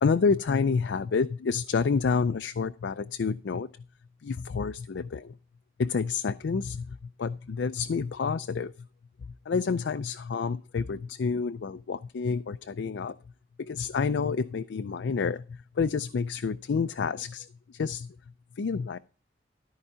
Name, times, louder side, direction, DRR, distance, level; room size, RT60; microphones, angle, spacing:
voice 1, 0.0-3.7 4.2-5.3 5.8-8.7 9.5-13.1 13.6-18.1 18.6-19.0, left 5 dB, 80° left, 0.4 m, -29 dB
13.5 x 4.8 x 5.6 m
head